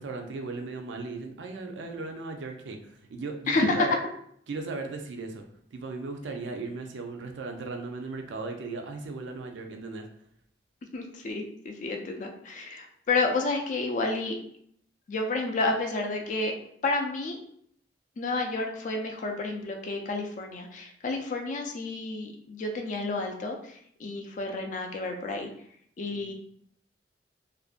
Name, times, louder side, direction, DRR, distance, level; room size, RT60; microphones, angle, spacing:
voice 1, 0.0-4.0 4.5-5.4 5.7-10.1 26.1-26.3, right 3 dB, 75° right, 4 dB, 0.4 m, -37 dB
voice 2, 3.5-3.9 10.9-14.4 15.1-16.5 16.8-17.4 18.2-25.5 26.0-26.3, left 3 dB, 45° left, 3 dB, 0.3 m, -30 dB
2.5 x 2.1 x 2.4 m, 0.67 s
head